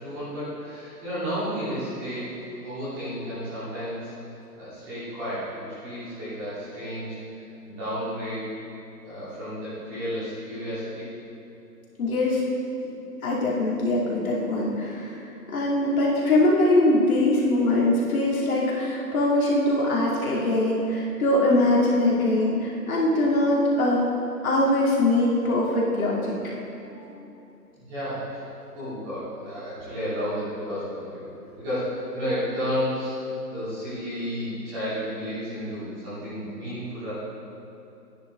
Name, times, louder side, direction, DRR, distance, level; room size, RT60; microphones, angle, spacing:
voice 1, 0.0-4.1 4.5-7.2 7.6-8.5 9.0-11.1 20.3-20.8 26.8-27.2 27.8-28.4 28.7-31.2 31.6-33.2 33.5-37.1, equal, 10° right, -13 dB, 2.7 m, -32 dB
voice 2, 12.0-12.4 13.2-15.2 15.5-24.0 24.4-26.4, left 1 dB, 55° left, -5 dB, 2.6 m, -22 dB
10.5 x 10.5 x 3.8 m, 2.9 s
hypercardioid pair, 170°, 50 cm